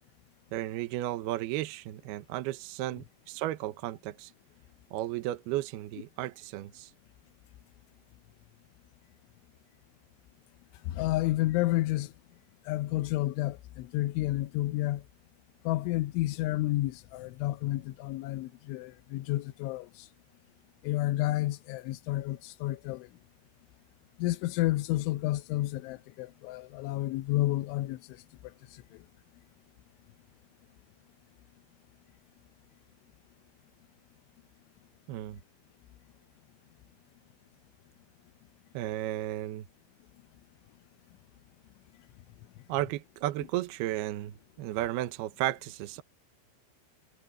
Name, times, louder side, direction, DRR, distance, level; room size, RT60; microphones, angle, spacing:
voice 1, 0.5-4.3 4.9-6.9 35.1-35.4 38.7-39.7 42.7-46.0, right 15 dB, 75° right, 2.4 m, -34 dB
voice 2, 10.9-12.1 12.7-15.0 15.7-19.9 20.8-23.1 24.2-28.0, left 17 dB, 80° left, 3.1 m, -30 dB
omnidirectional pair, 5.6 m